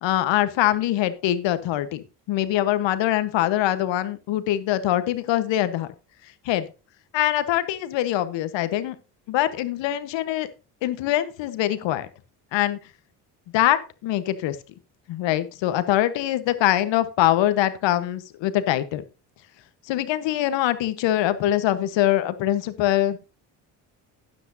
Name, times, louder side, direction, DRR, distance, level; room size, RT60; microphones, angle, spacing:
voice 1, 0.0-5.9 6.4-6.7 7.1-9.0 9.3-10.5 10.8-12.1 12.5-12.8 13.5-14.6 15.1-19.0 19.9-23.2, left 13 dB, 65° left, 13 dB, 1.2 m, -23 dB
12.5 x 9.9 x 2.7 m, 0.31 s
hypercardioid pair, 65°, 47 cm